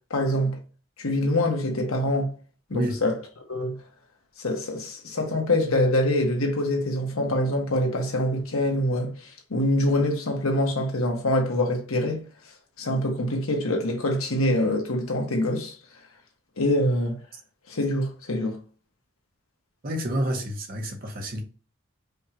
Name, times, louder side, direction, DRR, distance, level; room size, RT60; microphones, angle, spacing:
voice 1, 0.1-0.6 1.0-2.3 2.7-3.2 3.5-3.8 4.4-12.2 12.8-15.7 16.6-17.2 17.7-18.6, left 1 dB, 85° left, 1.1 m, -25 dB
voice 2, 19.8-21.4, equal, 40° right, 0.9 m, -29 dB
5.1 x 2.5 x 2.9 m
head